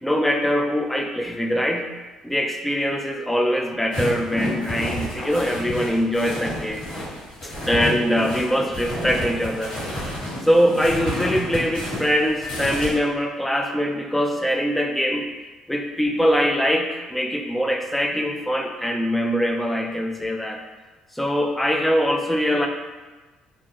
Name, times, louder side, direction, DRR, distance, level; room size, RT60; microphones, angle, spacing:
voice 1, 0.0-1.9 2.2-6.8 7.4-9.8 10.4-15.3 15.7-20.6 21.1-22.7, equal, 5° left, 3 dB, 0.4 m, -22 dB
sound 1, 3.9-12.9, equal, 55° left, 1.4 m, -30 dB
2.5 x 2.1 x 2.8 m, 1.2 s
hypercardioid pair, 60°, 2 cm